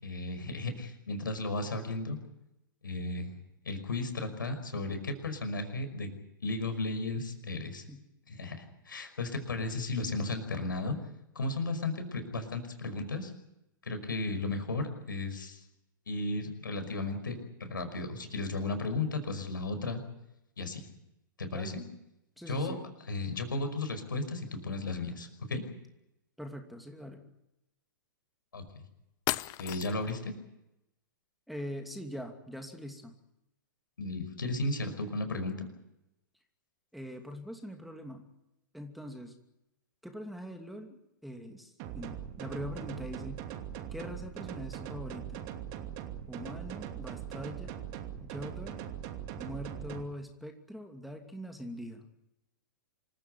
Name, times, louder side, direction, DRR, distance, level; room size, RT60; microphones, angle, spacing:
voice 1, 0.0-2.2 2.8-3.3 3.6-6.1 6.4-7.8 8.3-11.0 11.4-13.3 13.8-15.6 16.1-20.0 20.6-20.8 21.4-21.8 22.5-22.7 23.1-25.6 28.5-28.8 29.6-30.3 34.0-35.7, left 2 dB, 75° left, 8 dB, 5.5 m, -34 dB
voice 2, 22.4-22.8 26.4-27.2 31.5-33.1 36.9-38.3 38.7-39.3 40.0-43.4 43.9-45.5 46.3-47.8 48.2-48.8 49.3-52.0, equal, ahead, 4 dB, 2.7 m, -42 dB
sound 1, 28.7-28.8 29.3-30.2, left 20 dB, 35° left, 0.8 m, -35 dB
sound 2, 41.8-50.0, right 10 dB, 40° right, 2.7 m, -41 dB
26.5 x 15.5 x 9.5 m, 0.88 s
figure-of-eight pair, 110°, 11 cm